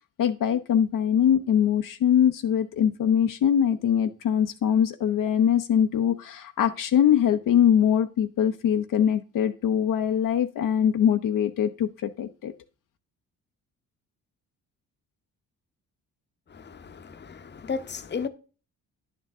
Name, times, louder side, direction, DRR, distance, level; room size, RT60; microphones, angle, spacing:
voice 1, 0.2-12.5, left 9 dB, 60° left, 0.7 m, -22 dB
voice 2, 16.5-18.3, left 5 dB, 30° left, 0.8 m, -34 dB
10.0 x 6.6 x 3.6 m
cardioid pair, 90°, 36 cm